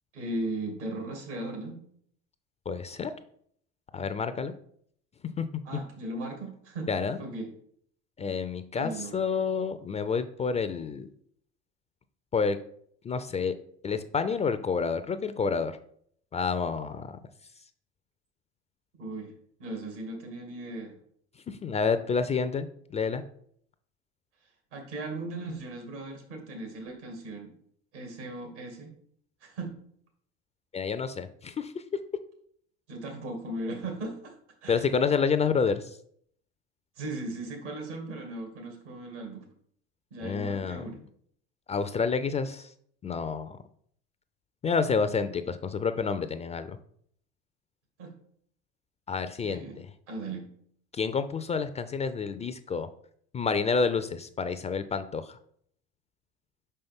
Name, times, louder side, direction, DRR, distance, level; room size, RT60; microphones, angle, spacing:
voice 1, 0.1-1.8 5.6-6.9 7.2-7.5 8.7-9.2 19.0-19.3 19.6-20.9 24.7-27.5 27.9-28.9 29.4-29.8 32.9-34.3 34.6-34.9 37.0-39.5 40.1-41.0 48.0-48.1 49.5-49.8 50.1-50.5, right 2 dB, 80° right, 3 dB, 2.2 m, -37 dB
voice 2, 2.7-3.1 3.9-4.5 5.4-5.5 6.9-7.2 8.2-11.1 12.3-12.6 13.0-13.5 13.8-15.8 16.3-17.2 21.5-22.7 22.9-23.2 30.7-31.8 34.7-36.0 40.2-40.9 41.7-42.7 43.0-43.6 44.6-46.8 49.1-49.7 50.9-52.9 53.3-55.4, left 5 dB, 20° left, 11 dB, 0.3 m, -29 dB
5.5 x 5.3 x 3.5 m, 0.64 s
hypercardioid pair, 80°, 34 cm